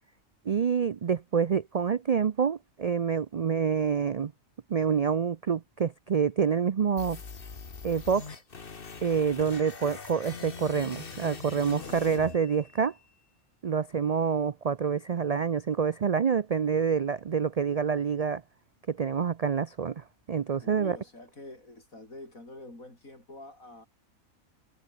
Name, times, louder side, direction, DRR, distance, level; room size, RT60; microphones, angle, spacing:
voice 1, 0.5-4.3 4.7-7.2 7.8-8.4 9.0-12.9 13.6-18.4 18.9-21.0, right 6 dB, 80° right, 0.3 m, -27 dB
sound 1, 7.0-13.0, left 5 dB, 45° left, 1.7 m, -43 dB
voice 2, 20.6-23.9, left 2 dB, 85° left, 7.8 m, -46 dB
omnidirectional pair, 1.4 m